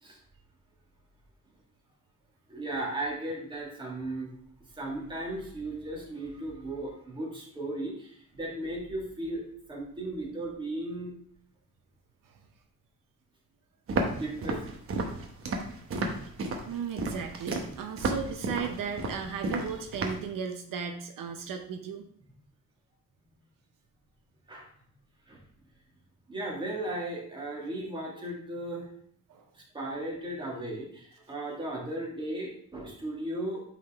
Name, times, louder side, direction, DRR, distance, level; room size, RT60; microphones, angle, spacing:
voice 1, 2.5-4.3 4.8-9.4 9.7-11.1 14.0-14.7 24.5-24.7 25.3-25.4 26.3-28.8 29.5-33.6, right 1 dB, 15° right, -2 dB, 1.6 m, -36 dB
Walk footsteps, 13.9-20.3, right 3 dB, 40° right, 0.9 m, -32 dB
voice 2, 16.6-22.1 29.3-29.4, right 6 dB, 75° right, 5 dB, 0.8 m, -35 dB
8.6 x 3.9 x 3.4 m, 0.62 s
cardioid pair, 175°, 33 cm